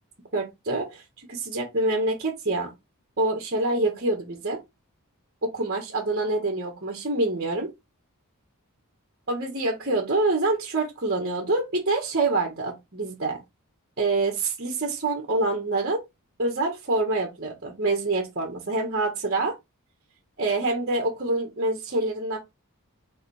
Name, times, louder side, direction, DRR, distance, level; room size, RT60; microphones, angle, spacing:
voice 1, 0.3-2.7 3.2-4.6 5.4-7.7 9.3-13.4 14.0-16.0 16.4-19.6 20.4-22.4, right 2 dB, 45° right, 1.9 m, -26 dB
7.1 x 4.0 x 3.6 m
head